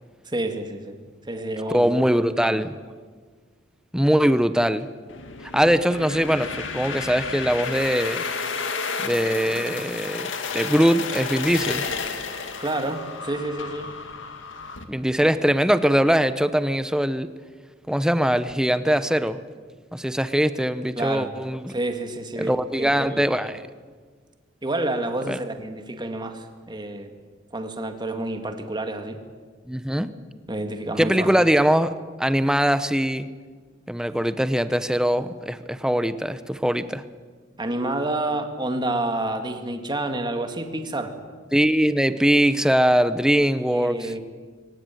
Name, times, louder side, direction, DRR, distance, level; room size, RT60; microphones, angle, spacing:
voice 1, 0.3-0.9 1.3-1.9 2.4-2.6 12.6-13.9 21.0-21.3 21.7-23.4 24.6-27.1 27.5-29.2 30.5-31.3 37.6-41.1 43.7-44.2, right 2 dB, 25° right, 6 dB, 2.0 m, -29 dB
voice 2, 1.7-2.7 3.9-4.9 5.5-8.2 9.0-11.8 14.9-17.3 17.9-19.4 19.9-21.7 22.4-23.6 25.3-25.4 29.7-30.1 31.0-31.9 32.2-33.3 33.9-37.0 41.5-44.1, equal, 5° right, 12 dB, 0.9 m, -21 dB
sound 1, 5.1-14.8, left 5 dB, 70° left, 2.1 m, -32 dB
23.0 x 18.5 x 9.3 m, 1.5 s
head